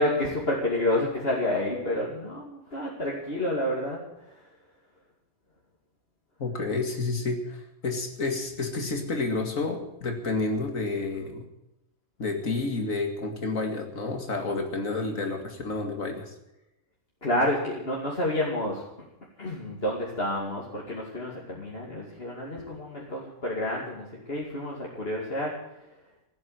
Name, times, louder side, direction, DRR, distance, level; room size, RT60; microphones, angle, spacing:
voice 1, 0.0-4.4 17.2-18.8 19.4-25.6, left 1 dB, 45° left, -4 dB, 2.8 m, -29 dB
voice 2, 6.4-11.5 12.2-16.3, left 3 dB, 70° left, 4 dB, 2.6 m, -30 dB
15.5 x 9.5 x 9.0 m, 0.90 s
omnidirectional pair, 1.4 m